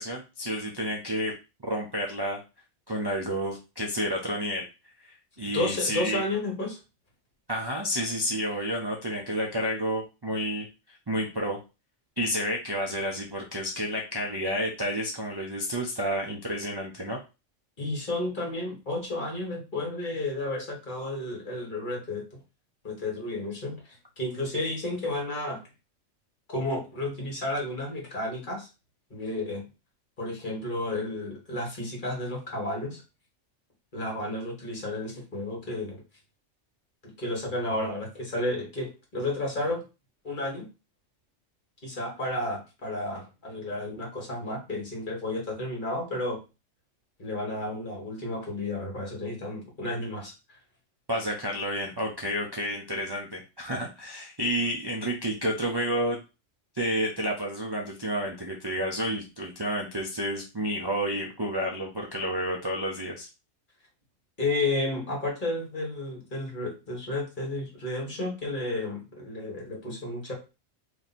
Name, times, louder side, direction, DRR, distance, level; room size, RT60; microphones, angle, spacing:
voice 1, 0.0-1.3 1.6-2.4 2.9-4.6 5.1-6.2 7.5-10.7 11.1-11.6 12.2-17.2 51.1-56.2 56.7-63.3, equal, 30° right, -2 dB, 0.5 m, -30 dB
voice 2, 5.5-6.8 17.8-22.4 22.8-23.8 24.2-25.6 26.5-28.7 29.1-29.6 30.2-33.0 33.9-36.0 37.0-39.8 40.2-40.7 41.8-46.4 47.2-50.3 64.4-70.3, left 2 dB, 45° left, -1 dB, 1.5 m, -32 dB
3.2 x 2.8 x 4.1 m, 0.29 s
omnidirectional pair, 1.2 m